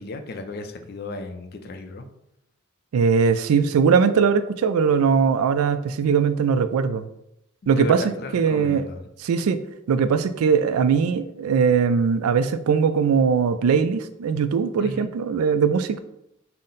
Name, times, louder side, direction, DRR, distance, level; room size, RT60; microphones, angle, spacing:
voice 1, 0.0-2.1 7.8-9.0 14.8-15.1, left 2 dB, 45° left, 7 dB, 0.4 m, -34 dB
voice 2, 2.9-7.1 7.7-8.0 8.3-8.8 9.2-9.6 9.9-16.0, right 6 dB, 75° right, 11 dB, 0.3 m, -20 dB
5.6 x 2.1 x 3.9 m, 0.83 s
head